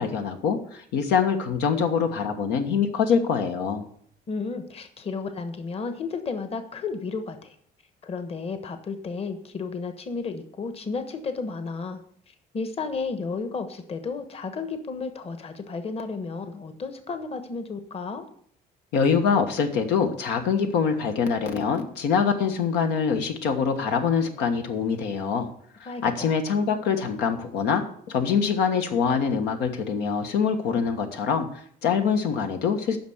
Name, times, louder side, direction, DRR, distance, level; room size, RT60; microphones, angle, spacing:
voice 1, 0.0-3.8 18.9-25.5 25.8-33.0, left 6 dB, 85° left, 5 dB, 1.4 m, -24 dB
voice 2, 4.3-7.6 8.0-12.0 12.3-18.3 25.8-26.4, left 4 dB, 35° left, 8 dB, 1.3 m, -33 dB
9.4 x 5.9 x 7.9 m, 0.62 s
cardioid pair, 110°, 17 cm